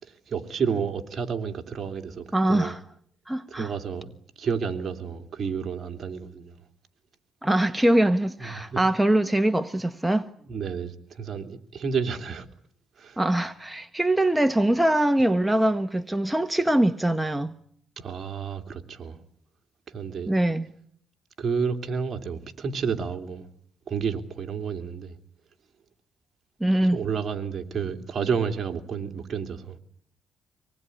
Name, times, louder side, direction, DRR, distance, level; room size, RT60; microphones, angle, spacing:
voice 1, 0.0-2.7 3.5-6.6 8.4-8.8 10.5-12.5 13.0-13.2 18.0-19.2 19.9-20.3 21.4-23.5 23.9-25.1 26.9-29.8, right 6 dB, 45° right, 3.0 m, -31 dB
voice 2, 2.3-2.8 3.3-3.7 7.4-10.3 13.2-17.5 20.3-20.7 26.6-27.0, right 1 dB, 5° right, 1.1 m, -23 dB
25.5 x 19.5 x 9.7 m
cardioid pair, 90°, 0 cm